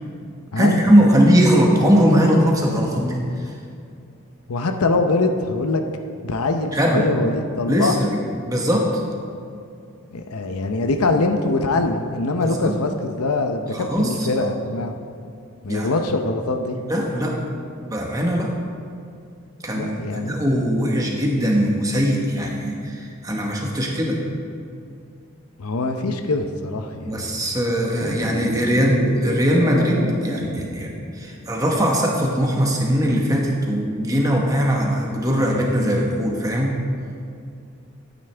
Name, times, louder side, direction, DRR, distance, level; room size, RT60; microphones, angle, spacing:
voice 1, 0.6-3.2 6.7-7.1 7.7-9.0 12.4-12.8 13.7-14.5 15.7-15.9 16.9-17.4 17.8-18.5 19.6-24.2 27.0-30.9 31.2-36.7, equal, 15° right, -1 dB, 1.2 m, -20 dB
voice 2, 4.5-5.8 6.2-8.0 10.1-14.9 15.6-16.8 19.7-20.3 25.6-27.2, left 2 dB, 80° left, 5 dB, 0.7 m, -23 dB
sound 1, 27.9-31.3 31.5-31.6, equal, 70° right, 2.1 m, -29 dB
12.5 x 9.1 x 3.4 m, 2.5 s
head